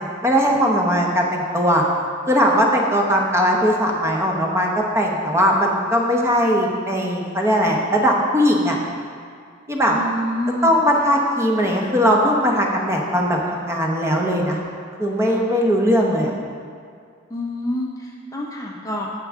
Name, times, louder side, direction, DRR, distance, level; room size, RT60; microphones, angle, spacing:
voice 1, 0.0-1.8 2.2-8.8 9.7-10.0 10.6-14.6 15.0-16.3, equal, 15° right, 0 dB, 0.8 m, -19 dB
voice 2, 9.9-10.7 17.3-19.1, left 1 dB, 15° left, -1 dB, 0.5 m, -27 dB
9.2 x 7.3 x 3.6 m, 2.2 s
head